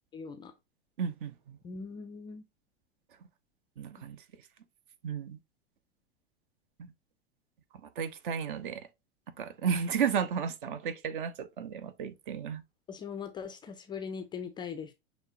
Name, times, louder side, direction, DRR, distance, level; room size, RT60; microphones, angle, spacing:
voice 1, 0.1-0.5 1.6-2.4 12.9-14.9, left 6 dB, 15° left, 0.4 m, -40 dB
voice 2, 1.0-1.6 3.8-4.2 5.0-5.4 6.8-6.9 8.0-8.9 9.4-12.6, right 7 dB, 50° right, 0.8 m, -33 dB
6.4 x 3.0 x 2.6 m
figure-of-eight pair, 90°, 32 cm